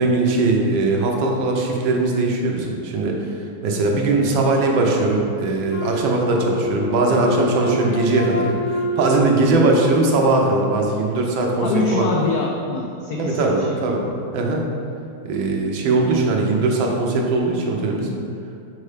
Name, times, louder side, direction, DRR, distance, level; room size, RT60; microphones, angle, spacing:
voice 1, 0.0-3.3 3.6-12.1 13.2-14.0 14.3-14.6 15.2-18.2, right 3 dB, 75° right, 0 dB, 1.5 m, -20 dB
Wind instrument woodwind instrument, 5.7-10.7, left 2 dB, 60° left, 1.6 m, -28 dB
voice 2, 11.6-14.0, left 3 dB, 85° left, 0 dB, 0.8 m, -24 dB
5.5 x 4.5 x 4.9 m, 2.5 s
omnidirectional pair, 2.2 m